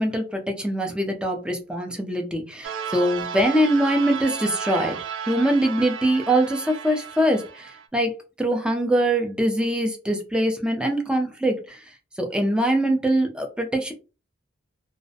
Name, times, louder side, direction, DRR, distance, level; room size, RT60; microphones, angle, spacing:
voice 1, 0.0-5.0 5.3-11.8 12.2-13.9, right 1 dB, 5° right, 0.4 m, -23 dB
sound 1, 2.6-7.9, right 7 dB, 85° right, 0.4 m, -33 dB
2.4 x 2.0 x 2.6 m
head